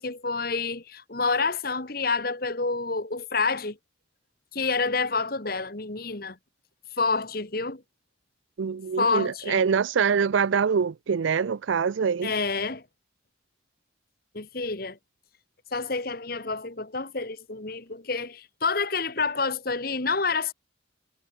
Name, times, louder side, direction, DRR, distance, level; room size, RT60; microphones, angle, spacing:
voice 1, 0.0-3.8 4.5-6.4 7.0-7.8 9.0-9.6 12.2-12.8 14.3-15.0 15.7-20.5, left 4 dB, 50° left, 1.7 m, -28 dB
voice 2, 8.6-12.3, right 6 dB, 80° right, 0.4 m, -24 dB
head